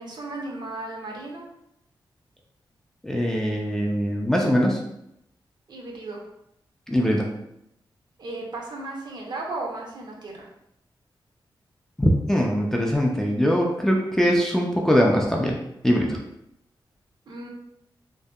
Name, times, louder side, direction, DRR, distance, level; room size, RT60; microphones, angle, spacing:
voice 1, 0.0-1.4 5.7-6.2 8.2-10.5 17.3-17.5, right 2 dB, 60° right, -1 dB, 0.6 m, -35 dB
voice 2, 3.0-4.8 6.9-7.3 12.0-16.2, equal, 5° left, -1 dB, 0.3 m, -22 dB
2.6 x 2.1 x 2.2 m, 0.79 s
wide cardioid pair, 120°, 8 cm